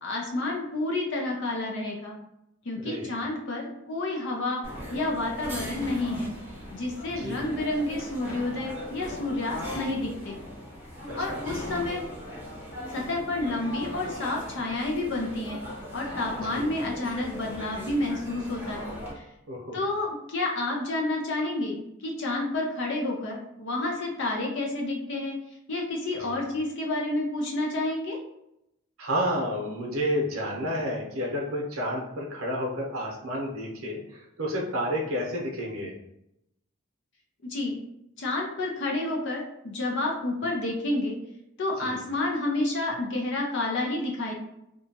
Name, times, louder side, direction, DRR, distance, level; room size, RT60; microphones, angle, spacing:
voice 1, 0.0-2.1 2.6-4.6 4.9-6.3 6.7-10.4 11.1-12.0 12.9-15.6 15.9-19.2 19.7-25.4 25.7-28.2 37.4-37.8 38.2-41.2 41.6-44.3, left 2 dB, 55° left, -1 dB, 0.5 m, -30 dB
voice 2, 2.8-3.1 7.2-7.5 11.2-11.4 16.4-16.7 19.5-19.8 26.2-26.4 29.0-35.9 41.8-42.0, equal, 75° right, -1 dB, 0.7 m, -30 dB
sound 1, 4.6-19.1, equal, 10° right, 0.7 m, -39 dB
2.8 x 2.2 x 2.8 m, 0.82 s
head